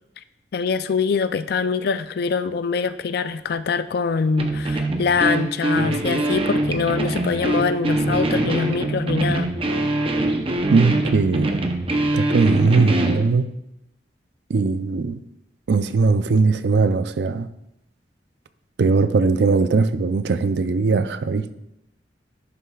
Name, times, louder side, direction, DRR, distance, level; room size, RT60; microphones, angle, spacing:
voice 1, 0.5-9.5, left 5 dB, 60° left, 0.4 m, -23 dB
sound 1, 4.4-13.2, right 2 dB, 30° right, 0.7 m, -23 dB
voice 2, 10.7-11.6 12.1-13.5 14.5-15.2 15.7-17.5 18.8-21.5, right 4 dB, 65° right, 0.4 m, -19 dB
11.0 x 6.6 x 2.3 m
head